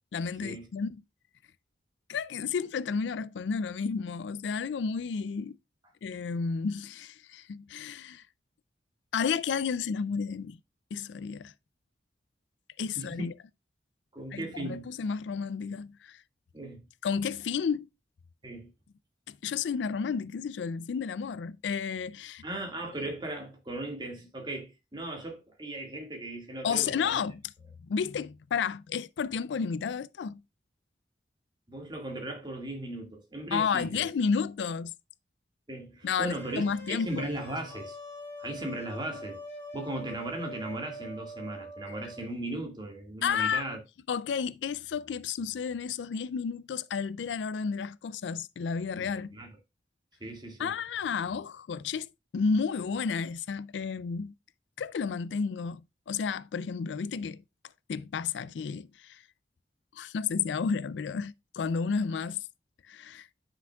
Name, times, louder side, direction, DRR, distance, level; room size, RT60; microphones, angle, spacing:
voice 1, 0.1-0.9 2.1-5.6 6.0-8.2 9.1-10.6 10.9-11.5 12.8-13.3 14.3-16.2 17.0-17.9 19.3-22.4 26.6-27.4 27.9-30.4 33.5-34.9 36.0-37.3 43.2-43.6 44.1-49.4 50.6-52.1 52.3-54.3 54.8-55.8 56.1-57.4 57.9-59.2 60.0-62.4 62.9-63.3, left 6 dB, 90° left, 0.4 m, -31 dB
voice 2, 13.0-13.3 14.1-14.9 16.5-16.8 18.4-18.7 22.4-27.2 31.7-34.1 35.7-38.0 38.4-39.4 39.7-43.8 49.3-49.5 50.2-50.7, right 1 dB, 25° right, 1.9 m, -37 dB
sound 1, 36.1-42.3, equal, 15° left, 3.1 m, -44 dB
10.0 x 5.9 x 2.3 m
head